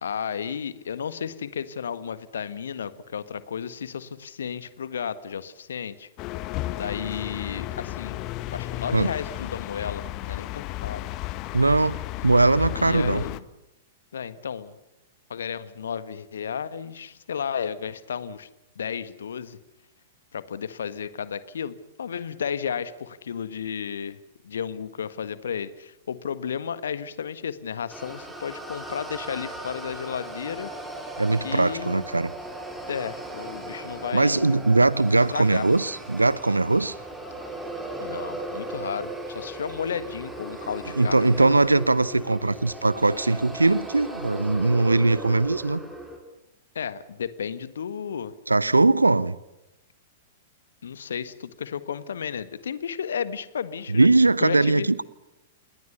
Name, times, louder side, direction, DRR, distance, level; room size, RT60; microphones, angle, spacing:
voice 1, 0.0-6.1 6.7-11.1 12.8-13.4 14.1-14.8 15.3-18.5 18.7-19.6 20.3-24.2 24.4-30.7 31.4-32.1 32.9-34.6 35.3-35.7 38.0-41.5 46.7-48.3 50.8-54.1 54.4-54.9, left 7 dB, 65° left, 14 dB, 1.6 m, -33 dB
sound 1, 6.2-13.4, left 16 dB, 35° left, 1.2 m, -33 dB
voice 2, 11.5-13.2 31.2-32.3 34.1-36.9 41.0-45.8 48.5-49.4 53.9-55.0, right 2 dB, 85° right, 19 dB, 0.9 m, -20 dB
sound 2, 27.9-46.2, right 1 dB, 5° right, 5.1 m, -37 dB
28.0 x 21.0 x 6.9 m, 0.93 s
figure-of-eight pair, 100°, 0 cm